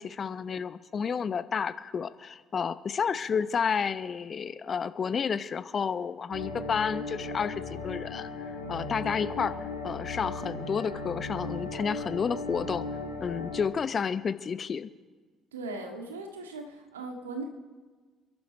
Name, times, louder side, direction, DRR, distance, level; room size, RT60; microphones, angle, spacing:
voice 1, 0.0-8.3 8.7-9.6 9.8-12.8 13.2-14.9, left 6 dB, 40° left, 13 dB, 0.8 m, -31 dB
sound 1, 6.3-13.7, left 3 dB, 85° left, 1.8 m, -37 dB
voice 2, 15.5-17.4, right 3 dB, 80° right, 4 dB, 1.7 m, -39 dB
28.0 x 11.5 x 4.4 m, 1.4 s
figure-of-eight pair, 50°, 0 cm